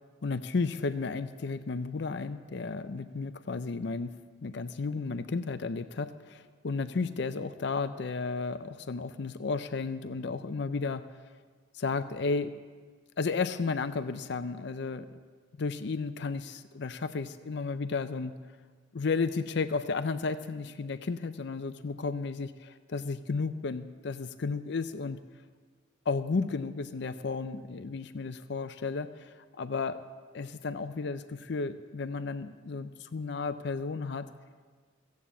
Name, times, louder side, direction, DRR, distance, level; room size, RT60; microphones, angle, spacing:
voice 1, 0.2-4.2 4.4-11.0 11.7-12.5 13.2-15.2 15.6-18.4 18.9-25.2 26.1-30.0 30.3-34.3, left 4 dB, 60° left, 11 dB, 0.5 m, -33 dB
15.0 x 8.4 x 7.4 m, 1.5 s
head